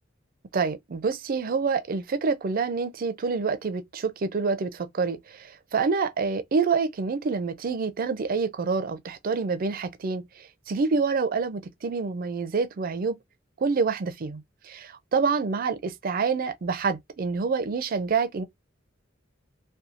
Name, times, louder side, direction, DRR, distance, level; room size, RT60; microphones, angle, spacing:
voice 1, 0.5-13.2 13.6-18.4, right 4 dB, 50° right, 0.4 m, -27 dB
2.8 x 2.2 x 2.5 m
head